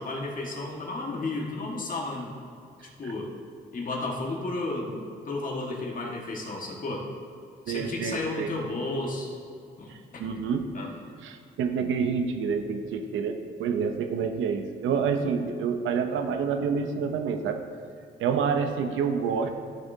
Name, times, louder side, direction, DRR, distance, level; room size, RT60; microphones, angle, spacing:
voice 1, 0.0-2.3 2.8-3.3 3.7-7.1 7.7-9.3 9.8-10.2 10.7-10.9, left 2 dB, 45° left, -1 dB, 1.7 m, -33 dB
voice 2, 7.7-8.5 9.9-10.7 11.2-17.6 18.2-19.5, right 6 dB, 85° right, 6 dB, 0.8 m, -28 dB
14.5 x 6.7 x 2.8 m, 2.3 s
cardioid pair, 90°, 20 cm